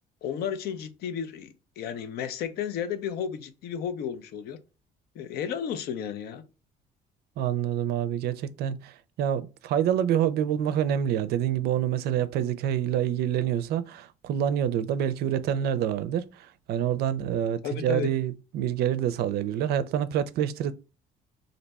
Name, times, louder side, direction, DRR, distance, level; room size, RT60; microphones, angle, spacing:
voice 1, 0.2-1.5 1.8-4.6 5.2-6.4 17.6-18.1, left 8 dB, 70° left, 0.6 m, -33 dB
voice 2, 7.4-20.7, right 10 dB, 70° right, 0.4 m, -27 dB
2.6 x 2.2 x 4.0 m
cardioid pair, 110°, 17 cm